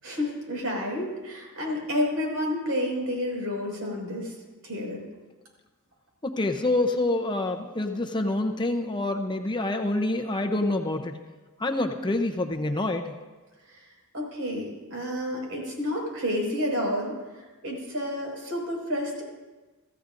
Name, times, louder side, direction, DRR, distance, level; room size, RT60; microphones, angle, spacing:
voice 1, 0.0-4.3 4.6-5.1 14.1-19.2, left 1 dB, 65° right, 0 dB, 5.6 m, -30 dB
voice 2, 6.2-11.2 11.6-13.1, left 2 dB, 20° left, 4 dB, 0.7 m, -27 dB
24.0 x 15.0 x 2.6 m, 1.2 s
head